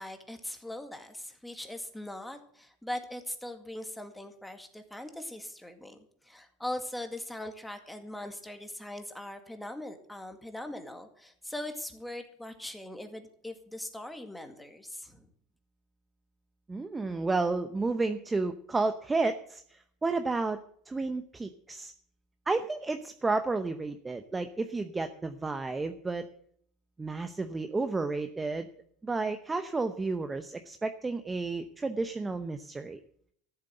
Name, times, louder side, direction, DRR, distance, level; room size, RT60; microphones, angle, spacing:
voice 1, 0.0-6.0 6.2-15.3, left 1 dB, 5° left, 6 dB, 2.0 m, -40 dB
voice 2, 16.7-21.9 22.5-26.3 27.0-28.7 29.0-33.0, right 3 dB, 15° right, 9 dB, 0.8 m, -31 dB
13.5 x 8.0 x 7.9 m, 0.62 s
supercardioid pair, 125°, 0 cm